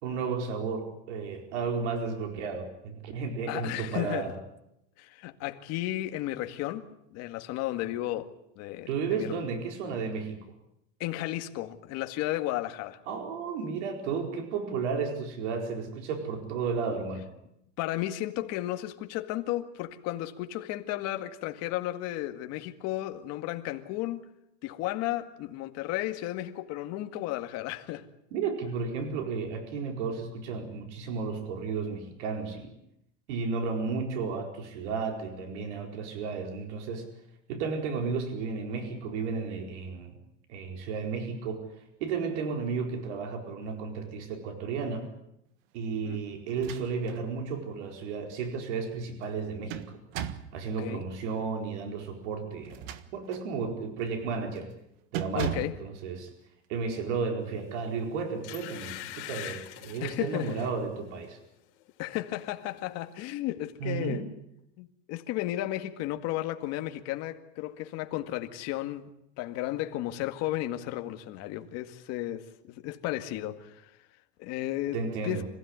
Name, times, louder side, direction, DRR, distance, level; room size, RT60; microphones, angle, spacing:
voice 1, 0.0-4.4 8.9-10.4 13.1-17.3 28.3-32.7 33.3-37.1 37.5-40.2 40.5-41.6 42.0-45.1 45.7-50.0 50.5-52.8 53.1-54.7 55.1-56.3 56.7-61.4 63.8-64.2 74.9-75.5, right 5 dB, 80° right, 4.6 m, -33 dB
voice 2, 3.5-4.3 5.0-6.8 7.1-8.3 8.6-9.3 11.0-13.0 17.8-24.2 24.6-28.1 46.0-46.2 50.8-51.0 55.3-55.7 60.0-60.5 62.0-64.3 64.8-73.9 74.4-75.4, left 15 dB, 50° left, 2.0 m, -34 dB
sound 1, 46.5-47.2 47.7-47.8 49.2-50.6 52.6-53.5 54.0-54.2 54.6-54.8 55.1-55.8, right 10 dB, 60° right, 1.6 m, -37 dB
sound 2, 57.7-57.9 58.4-60.8 61.2-61.4 61.8-62.5 62.8-62.9, left 15 dB, 85° left, 3.9 m, -43 dB
26.5 x 16.0 x 9.6 m
cardioid pair, 165°, 34 cm